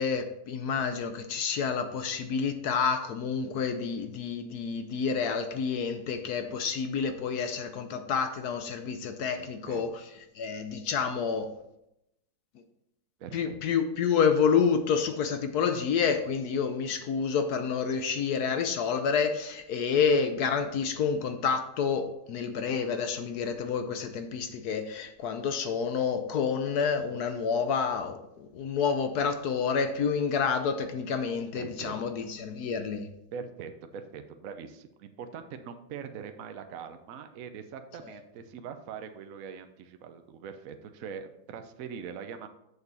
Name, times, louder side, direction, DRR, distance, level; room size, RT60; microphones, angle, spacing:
voice 1, 0.0-10.0 10.4-11.5 13.3-33.1, left 6 dB, 70° left, 8 dB, 1.0 m, -29 dB
voice 2, 9.3-9.8 13.2-13.6 26.1-26.2 31.5-31.9 33.3-42.5, right 7 dB, 75° right, 7 dB, 0.8 m, -42 dB
6.9 x 6.7 x 4.1 m, 0.82 s
omnidirectional pair, 2.2 m